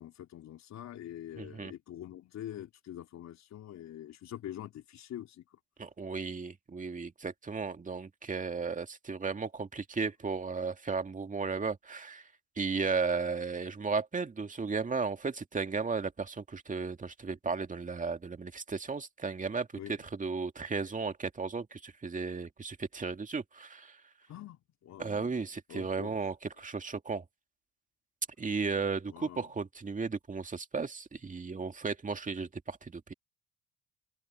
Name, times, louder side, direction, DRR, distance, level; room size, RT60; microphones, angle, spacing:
voice 1, 0.0-5.4 19.7-19.9 24.3-25.3 25.7-26.1 29.1-29.5, left 11 dB, 55° left, 3.5 m, -45 dB
voice 2, 1.4-1.7 5.8-12.3 12.6-24.0 25.0-27.2 28.4-33.1, right 4 dB, 25° right, 2.3 m, -35 dB
open air
hypercardioid pair, 65°, 33 cm